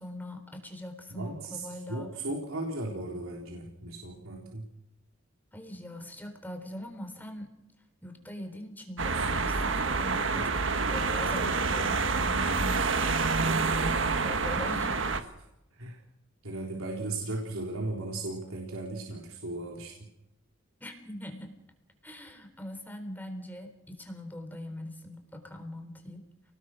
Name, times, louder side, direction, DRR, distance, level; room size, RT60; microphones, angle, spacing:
voice 1, 0.0-2.1 5.5-7.5 8.0-10.6 10.9-13.4 13.8-14.0 14.2-15.2 20.8-21.5 22.0-26.3, left 1 dB, 10° left, 5 dB, 3.7 m, -42 dB
voice 2, 1.1-4.7 9.1-9.7 13.3-14.0 15.2-15.3 15.7-16.0 16.4-20.1, right 2 dB, 80° right, -1 dB, 4.0 m, -37 dB
sound 1, 9.0-15.2, right 4 dB, 60° right, 1.5 m, -27 dB
29.5 x 19.5 x 6.2 m, 0.87 s
head